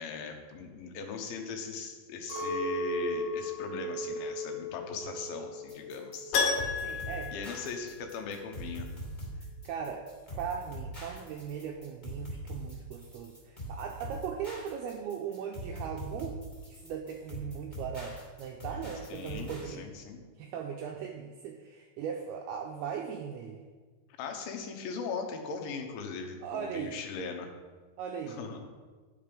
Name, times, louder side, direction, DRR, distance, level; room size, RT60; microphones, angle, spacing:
voice 1, 0.0-6.4 7.3-8.9 19.1-20.2 24.2-27.5 28.3-28.7, left 5 dB, 90° left, 4 dB, 3.5 m, -39 dB
Chink clink, 2.3-6.7 6.9-7.7, equal, 30° right, 2.2 m, -36 dB
sound 1, 5.7-19.7, equal, 20° left, 1.4 m, -42 dB
Keyboard (musical), 6.3-8.4 8.6-8.7 11.4-11.5 11.8-11.9, left 5 dB, 70° left, 2.5 m, -32 dB
voice 2, 6.7-7.6 9.4-16.4 16.7-19.8 20.4-23.6 26.4-27.0 28.0-28.4, right 7 dB, 90° right, 2 dB, 2.2 m, -39 dB
9.9 x 7.4 x 5.2 m, 1.4 s
omnidirectional pair, 5.2 m